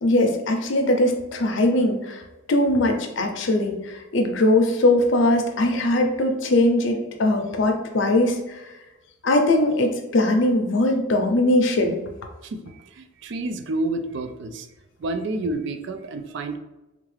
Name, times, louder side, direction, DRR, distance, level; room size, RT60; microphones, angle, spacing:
voice 1, 0.0-2.2 2.5-8.6 9.2-12.0, left 1 dB, 60° left, 4 dB, 0.5 m, -20 dB
voice 2, 12.9-14.7 15.0-16.6, right 2 dB, 55° right, 8 dB, 0.3 m, -29 dB
3.6 x 2.3 x 3.2 m, 1.0 s
head